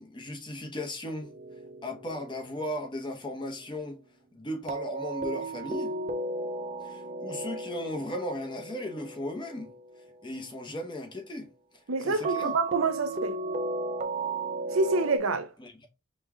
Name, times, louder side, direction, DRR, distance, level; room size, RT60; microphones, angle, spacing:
voice 1, 0.0-1.3 1.8-4.0 4.3-5.9 6.8-9.7 10.2-11.5 12.0-12.5 15.6-15.9, left 1 dB, 25° left, 0.7 m, -36 dB
sound 1, 1.2-2.6 4.7-10.3 12.2-15.2, right 3 dB, 35° right, 0.5 m, -35 dB
voice 2, 11.9-13.4 14.7-15.5, right 3 dB, 80° right, 0.6 m, -27 dB
5.1 x 2.2 x 3.5 m
head